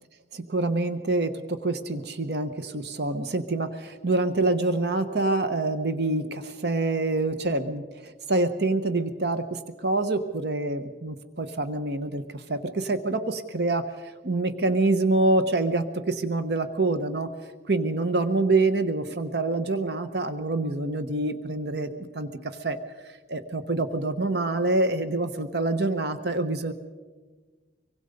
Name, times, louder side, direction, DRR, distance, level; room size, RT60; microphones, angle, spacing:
voice 1, 0.3-17.3 17.7-22.8 23.3-26.7, right 2 dB, 60° right, 9 dB, 1.0 m, -26 dB
25.5 x 23.5 x 5.3 m, 1.4 s
head